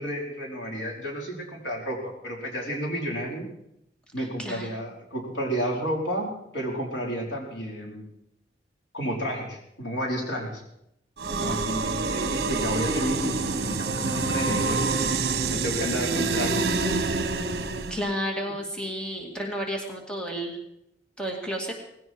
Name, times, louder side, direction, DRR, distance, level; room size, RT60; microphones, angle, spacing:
voice 1, 0.0-3.5 4.1-8.1 8.9-10.6 11.4-15.1 15.5-16.6, equal, 85° left, -1 dB, 4.8 m, -31 dB
voice 2, 4.2-4.7 11.4-11.7 17.9-20.6 21.2-21.7, equal, 5° left, 1 dB, 2.2 m, -32 dB
sound 1, 11.2-18.1, right 3 dB, 55° right, 1.3 m, -27 dB
19.0 x 16.0 x 4.7 m, 0.82 s
head